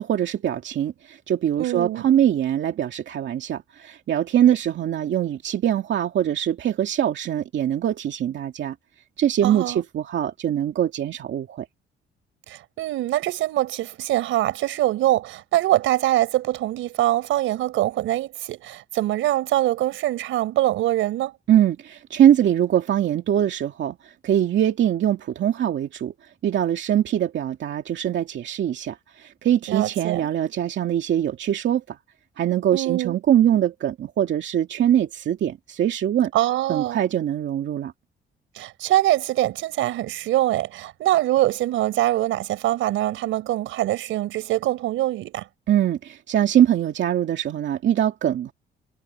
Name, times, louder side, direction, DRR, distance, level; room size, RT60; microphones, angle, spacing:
voice 1, 0.0-8.7 9.2-11.7 21.5-32.0 32.4-36.3 36.7-37.9 45.7-48.5, right 10 dB, 65° right, 2.4 m, -22 dB
voice 2, 1.6-2.1 9.4-9.8 12.5-21.3 29.7-30.2 32.7-33.2 36.3-37.0 38.5-45.5, right 15 dB, 90° right, 5.0 m, -23 dB
cardioid pair, 90°, 20 cm